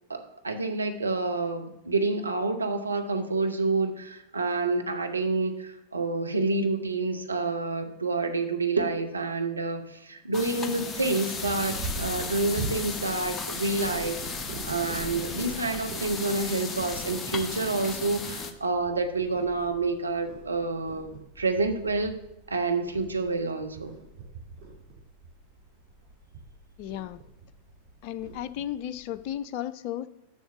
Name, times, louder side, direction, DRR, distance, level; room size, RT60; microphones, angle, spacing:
voice 1, 0.1-14.2 14.6-22.1 22.5-23.9, right 3 dB, 80° right, 5 dB, 1.0 m, -28 dB
sound 1, 10.3-18.5, left 4 dB, 20° left, 0.9 m, -35 dB
Purr, 11.3-29.3, right 3 dB, 35° right, 3.4 m, -43 dB
voice 2, 26.8-27.2 28.0-30.1, left 11 dB, 45° left, 14 dB, 0.4 m, -34 dB
7.1 x 6.1 x 7.1 m, 0.85 s
figure-of-eight pair, 90°, 0 cm